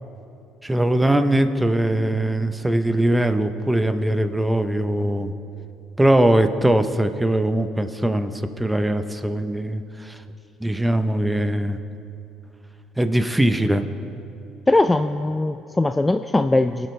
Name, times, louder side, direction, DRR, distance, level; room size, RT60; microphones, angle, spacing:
voice 1, 0.6-5.3 6.0-10.2 10.6-11.8 13.0-13.9, right 1 dB, 10° right, 9 dB, 0.8 m, -21 dB
voice 2, 14.7-16.9, left 2 dB, 15° left, 9 dB, 0.3 m, -20 dB
20.5 x 8.0 x 3.3 m, 2.7 s
supercardioid pair, 70°, 0 cm